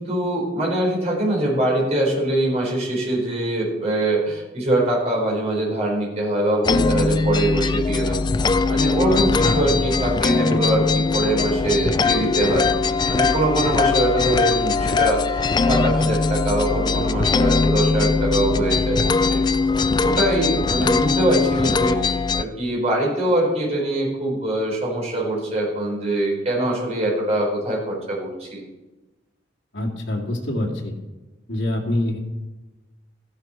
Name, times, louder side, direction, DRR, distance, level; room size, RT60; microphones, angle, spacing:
voice 1, 0.0-12.6 13.1-19.4 20.0-22.0 22.4-28.6, right 1 dB, 35° right, -3 dB, 4.6 m, -23 dB
sound 1, 6.6-22.4, left 4 dB, 25° left, 0.3 m, -21 dB
voice 2, 9.0-9.7 29.7-30.9 31.5-32.2, left 1 dB, 90° left, -1 dB, 2.1 m, -25 dB
13.0 x 11.0 x 4.5 m, 1.1 s
head